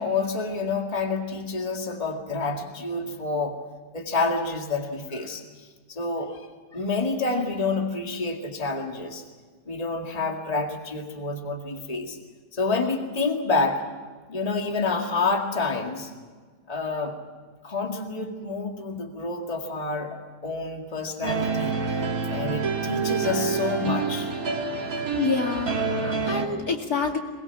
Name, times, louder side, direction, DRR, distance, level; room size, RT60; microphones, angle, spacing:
voice 1, 0.0-3.6 3.9-6.5 6.7-9.2 9.7-12.2 12.5-13.8 14.3-16.1 16.7-17.2 17.6-21.8 22.3-24.3 24.7-25.2 26.5-26.6, left 3 dB, 20° left, 2 dB, 2.1 m, -28 dB
sound 1, 21.2-26.5, right 5 dB, 55° right, 2.8 m, -27 dB
voice 2, 24.9-27.2, left 4 dB, 60° left, 2 dB, 2.9 m, -28 dB
22.0 x 22.0 x 7.3 m, 1.5 s
omnidirectional pair, 1.8 m